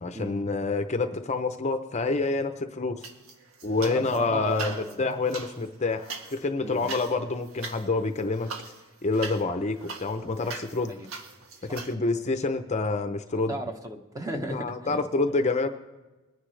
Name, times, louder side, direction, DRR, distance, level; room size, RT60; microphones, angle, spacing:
voice 1, 0.0-3.0 3.6-8.7 9.0-10.9 11.6-13.6 14.5-15.7, left 3 dB, 35° left, 8 dB, 0.7 m, -27 dB
sound 1, 3.0-4.2 4.5-11.9, right 4 dB, 85° right, 1.5 m, -41 dB
voice 2, 3.9-5.0 6.6-6.9 10.9-11.1 11.7-11.8 13.3-15.0, right 1 dB, 15° right, 5 dB, 1.1 m, -35 dB
22.0 x 9.9 x 3.3 m, 1.2 s
head